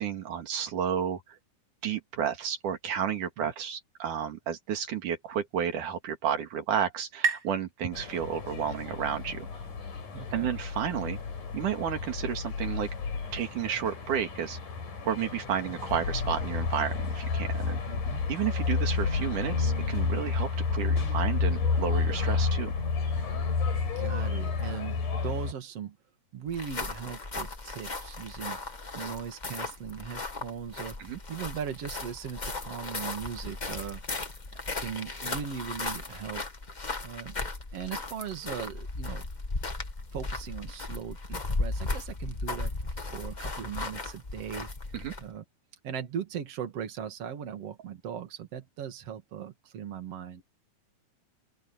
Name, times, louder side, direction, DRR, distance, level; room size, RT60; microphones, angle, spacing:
voice 1, 0.0-1.4 1.8-9.5 10.3-11.2 11.5-12.9 13.3-14.6 15.1-17.8 18.3-22.8 31.0-31.2 44.9-45.1, right 8 dB, 85° right, 3.6 m, -32 dB
sound 1, 5.8-9.1, right 5 dB, 25° right, 6.9 m, -36 dB
sound 2, 7.9-25.5, left 5 dB, 90° left, 5.8 m, -31 dB
voice 2, 10.1-10.5 17.9-18.2 24.0-26.0 26.3-28.6 28.9-31.0 31.3-34.0 34.5-36.5 37.0-37.4 37.7-39.3 40.1-42.7 43.1-44.7 45.2-45.4 45.8-50.4, right 8 dB, 55° right, 3.1 m, -38 dB
sound 3, 26.5-45.3, left 3 dB, 45° left, 0.5 m, -36 dB
open air
omnidirectional pair, 3.5 m